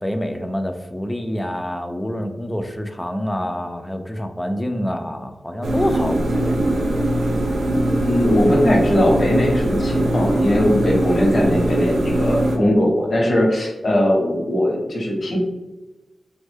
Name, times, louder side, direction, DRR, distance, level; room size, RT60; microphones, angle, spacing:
voice 1, 0.0-6.6, equal, 10° left, 6 dB, 0.3 m, -26 dB
sound 1, 5.6-12.6, right 1 dB, 80° right, 0.5 m, -21 dB
voice 2, 7.9-15.4, left 1 dB, 55° left, -2 dB, 0.9 m, -19 dB
3.4 x 2.1 x 3.3 m, 1.1 s
wide cardioid pair, 135°, 0 cm